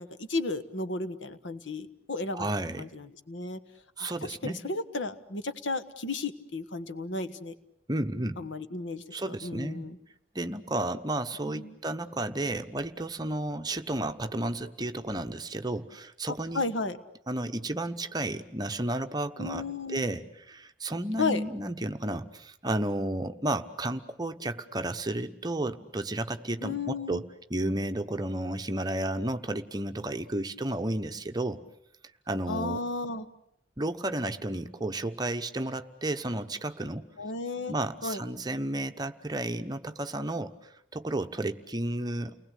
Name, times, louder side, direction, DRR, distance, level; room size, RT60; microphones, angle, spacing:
voice 1, 0.0-2.5 2.8-3.6 4.0-7.5 8.4-10.0 11.4-11.7 16.3-17.0 19.4-20.0 21.2-21.4 26.6-27.2 32.5-33.3 37.2-37.7 38.0-38.2, left 3 dB, 90° left, 11 dB, 1.4 m, -34 dB
voice 2, 2.3-2.9 4.0-4.6 7.9-8.4 9.1-9.9 10.3-16.7 17.3-31.6 32.3-32.8 33.8-37.1 37.7-40.5 40.9-42.3, right 1 dB, 20° right, 8 dB, 1.0 m, -32 dB
30.0 x 20.0 x 8.4 m, 0.77 s
head